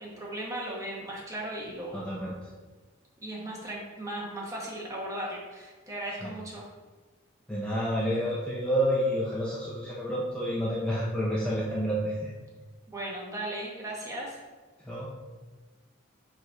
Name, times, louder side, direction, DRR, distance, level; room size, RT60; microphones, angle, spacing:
voice 1, 0.0-2.1 3.2-6.7 12.9-14.4, right 1 dB, 15° right, -4 dB, 1.1 m, -37 dB
voice 2, 1.9-2.3 6.2-6.3 7.5-12.3 14.8-15.1, equal, 5° left, -7 dB, 0.7 m, -29 dB
4.9 x 4.1 x 4.7 m, 1.3 s
head